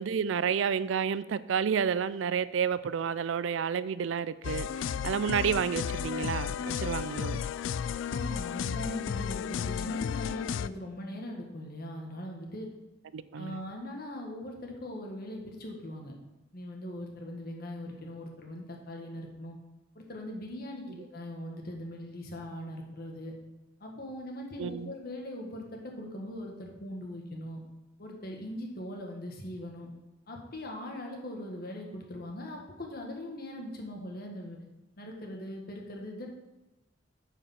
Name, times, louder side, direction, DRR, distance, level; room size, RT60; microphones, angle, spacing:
voice 1, 0.0-7.4 13.1-13.6 24.6-24.9, right 7 dB, 90° right, 0.4 m, -30 dB
sound 1, 4.4-10.7, left 7 dB, 90° left, 0.3 m, -33 dB
voice 2, 8.1-12.7 13.3-16.1 16.5-19.6 19.9-23.3 23.8-27.6 28.0-29.9 30.3-34.6 35.0-36.3, left 1 dB, 55° left, 1.6 m, -40 dB
9.0 x 4.9 x 5.8 m
head